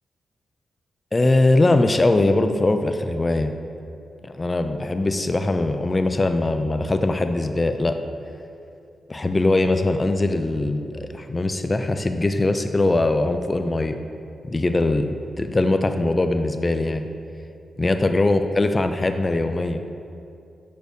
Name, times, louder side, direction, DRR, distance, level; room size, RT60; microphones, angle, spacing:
voice 1, 1.1-3.5 4.2-8.0 9.1-14.0 14.4-15.1 15.4-17.1 17.8-19.8, left 2 dB, 25° left, 7 dB, 0.3 m, -21 dB
8.1 x 6.6 x 2.6 m, 2.6 s
wide cardioid pair, 105°, 0 cm